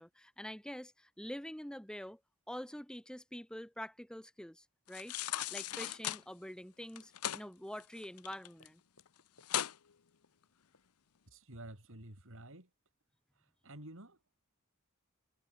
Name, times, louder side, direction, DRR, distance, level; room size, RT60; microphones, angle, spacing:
voice 1, 0.0-2.2 2.5-5.1 5.5-8.8, equal, 5° left, 1.2 m, -46 dB
sound 1, 4.9-6.2 6.9-7.4 7.8-8.7 9.0-9.1 9.4-9.8 10.2-10.3, left 12 dB, 80° left, 0.8 m, -37 dB
sound 2, 6.7-11.8, left 4 dB, 65° left, 7.6 m, -72 dB
voice 2, 11.3-12.7 13.4-14.4, right 1 dB, 60° right, 4.3 m, -51 dB
head